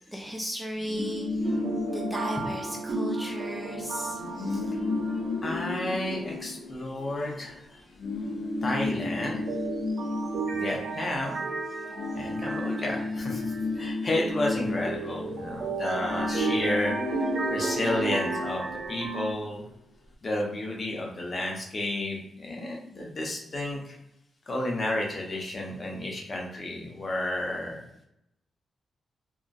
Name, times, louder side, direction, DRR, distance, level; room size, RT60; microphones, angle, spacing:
voice 1, 0.1-1.3 1.9-4.3 5.4-5.5 8.1-8.3, equal, 5° right, 0 dB, 0.4 m, -35 dB
sound 1, 0.8-3.3 3.6-3.8 4.1-7.5 8.0-11.6 11.8-19.4, left 2 dB, 85° left, 0.4 m, -33 dB
sound 2, 1.4-6.8 7.0-7.1 9.5-13.6 14.9-19.3, right 4 dB, 75° right, 0.4 m, -34 dB
voice 2, 5.4-7.5 8.6-9.4 10.5-11.4 12.1-13.4 13.8-16.9 17.5-19.6 20.2-23.9 24.5-27.8, left 1 dB, 45° left, -1 dB, 0.6 m, -31 dB
2.5 x 2.2 x 2.3 m, 0.80 s
cardioid pair, 70°, 0 cm